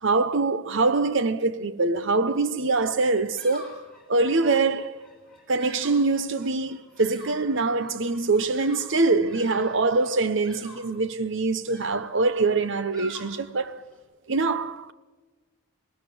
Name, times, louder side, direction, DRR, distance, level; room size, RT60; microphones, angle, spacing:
voice 1, 0.0-3.8 4.1-5.0 5.5-13.8 14.3-14.9, right 3 dB, 55° right, 0.9 m, -24 dB
Bird vocalization bird call bird song, 3.0-14.0, left 1 dB, 5° left, 5.3 m, -48 dB
19.5 x 19.0 x 7.1 m
head